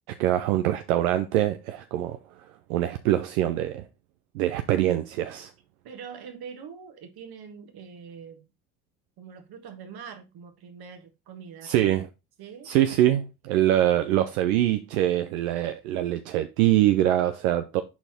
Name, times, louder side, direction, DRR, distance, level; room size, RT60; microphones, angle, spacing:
voice 1, 0.1-2.2 2.7-3.8 4.3-5.5 11.6-12.1 12.7-17.8, right 13 dB, 85° right, 0.5 m, -24 dB
voice 2, 5.8-8.5 9.2-11.9 12.4-12.7, right 6 dB, 60° right, 1.5 m, -43 dB
5.7 x 4.3 x 4.3 m
hypercardioid pair, 55°, 42 cm